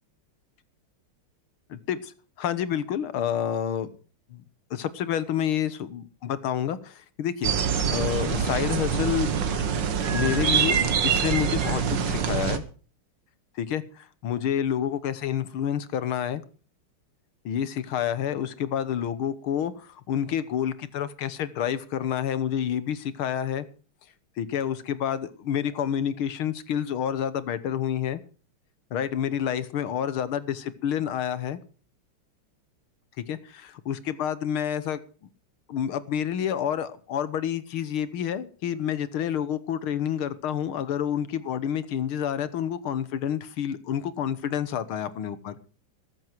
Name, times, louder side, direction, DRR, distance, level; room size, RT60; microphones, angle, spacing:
voice 1, 1.7-2.1 2.4-3.9 4.3-4.4 4.7-7.5 7.9-9.7 10.1-12.6 13.6-16.4 17.5-23.7 24.4-28.2 28.9-31.6 33.3-35.0 35.7-45.7, left 9 dB, 80° left, 15 dB, 2.0 m, -29 dB
sound 1, 7.4-12.6, right 7 dB, 60° right, 2.0 m, -25 dB
14.5 x 14.0 x 4.6 m, 0.39 s
omnidirectional pair, 2.3 m